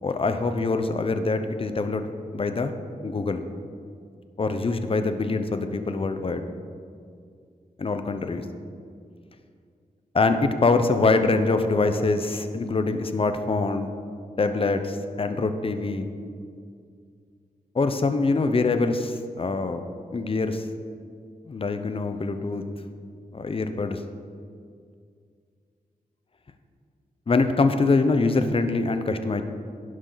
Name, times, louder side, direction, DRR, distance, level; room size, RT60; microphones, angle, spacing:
voice 1, 0.0-2.7 3.0-3.4 4.4-6.4 7.8-8.4 10.1-13.9 14.4-16.1 17.7-19.8 20.1-20.7 21.5-22.6 23.3-24.0 27.3-29.4, left 3 dB, 40° left, 8 dB, 0.8 m, -24 dB
11.5 x 11.0 x 4.0 m, 2.2 s
cardioid pair, 75°, 15 cm